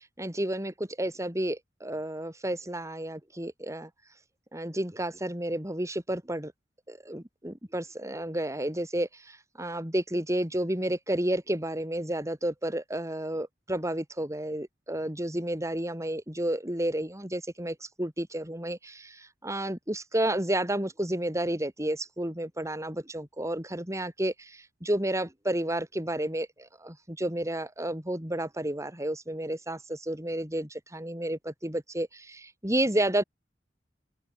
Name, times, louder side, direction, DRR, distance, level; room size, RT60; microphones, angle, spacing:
voice 1, 0.0-3.9 4.5-6.5 6.9-33.2, right 1 dB, 15° right, 4.4 m, -31 dB
open air
head